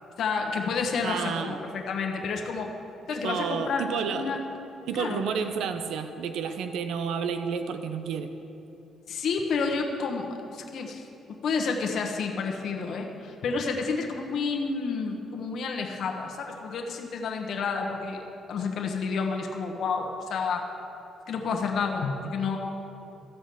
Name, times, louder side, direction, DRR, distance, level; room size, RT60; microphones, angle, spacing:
voice 1, 0.2-2.7 3.1-3.9 4.1-4.4 4.9-5.2 9.1-11.0 11.3-18.2 18.5-20.7 21.3-22.6, left 5 dB, 65° left, 1 dB, 1.2 m, -30 dB
voice 2, 1.0-1.6 3.2-4.4 4.9-8.3, right 6 dB, 80° right, 8 dB, 0.7 m, -30 dB
13.5 x 5.1 x 7.8 m, 2.9 s
cardioid pair, 90°, 0 cm